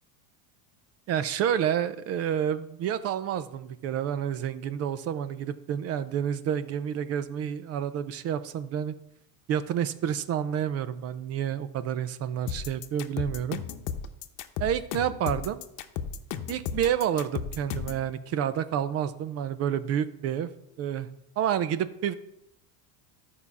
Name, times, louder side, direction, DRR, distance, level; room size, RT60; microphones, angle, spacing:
voice 1, 1.1-8.9 9.5-13.6 14.6-15.6 16.5-20.5 20.8-21.1 21.4-22.1, right 9 dB, 35° right, 14 dB, 0.4 m, -29 dB
sound 1, 12.5-18.0, left 7 dB, 60° left, 0.9 m, -34 dB
12.0 x 5.6 x 4.7 m, 0.80 s
supercardioid pair, 140°, 49 cm